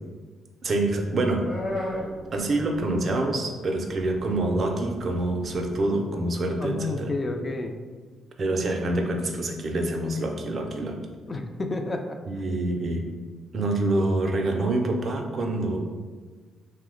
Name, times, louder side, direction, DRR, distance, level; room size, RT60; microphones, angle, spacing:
voice 1, 0.6-1.4 2.3-7.1 8.4-11.0 12.3-13.0 13.5-15.8, right 2 dB, 45° right, 3 dB, 0.4 m, -26 dB
sound 1, 0.8-3.3 3.6-6.0, left 1 dB, 50° left, 1.0 m, -36 dB
voice 2, 6.6-7.8 11.3-12.2 12.4-12.6, left 2 dB, 30° left, 5 dB, 0.3 m, -30 dB
2.7 x 2.0 x 3.7 m, 1.4 s
cardioid pair, 90°, 0 cm